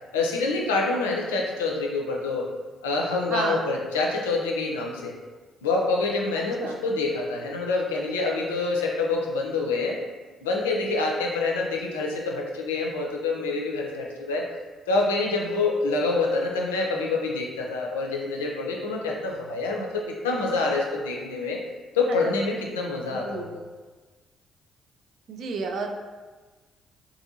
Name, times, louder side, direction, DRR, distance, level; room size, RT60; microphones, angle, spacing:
voice 1, 0.1-2.5 2.8-5.1 5.6-10.0 10.4-14.4 14.9-21.6 21.9-23.6, left 3 dB, 85° left, -1 dB, 0.4 m, -26 dB
voice 2, 3.3-3.7 6.4-6.8 23.1-23.5 25.3-25.9, right 4 dB, 60° right, 4 dB, 0.3 m, -31 dB
2.6 x 2.5 x 2.7 m, 1.3 s
hypercardioid pair, 45°, 0 cm